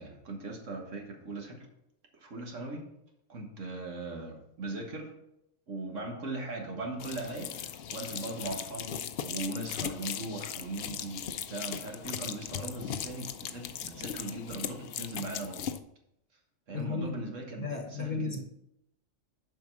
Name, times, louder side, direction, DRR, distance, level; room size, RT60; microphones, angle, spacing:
voice 1, 0.0-1.6 2.2-2.9 3.3-5.1 5.7-9.0 9.3-15.6 16.7-18.4, right 2 dB, 75° right, 1 dB, 1.9 m, -39 dB
sound 1, 7.0-15.8, left 9 dB, 60° left, 0.7 m, -38 dB
voice 2, 16.7-17.1 17.5-18.4, left 4 dB, 40° left, 4 dB, 1.1 m, -34 dB
7.1 x 5.4 x 6.1 m, 0.80 s
omnidirectional pair, 1.3 m